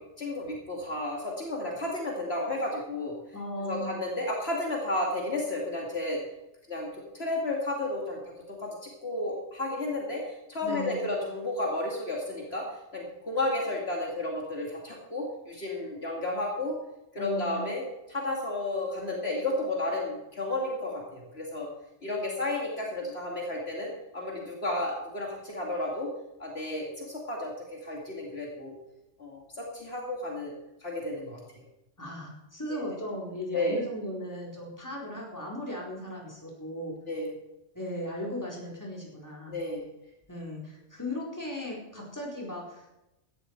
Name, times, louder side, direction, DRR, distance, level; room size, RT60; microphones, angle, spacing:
voice 1, 0.0-3.1 3.6-6.2 6.7-16.8 17.1-17.8 18.1-21.7 22.0-26.1 26.4-28.8 29.2-30.5 30.8-31.6 32.7-33.0 33.5-33.8 37.1-37.3 39.5-39.9, left 2 dB, 60° left, -1 dB, 2.7 m, -32 dB
voice 2, 3.3-3.9 10.6-11.0 17.2-17.7 32.0-36.9 37.7-39.6 40.3-43.0, left 1 dB, 15° left, -2 dB, 4.1 m, -37 dB
16.5 x 12.0 x 4.6 m, 0.91 s
omnidirectional pair, 1.2 m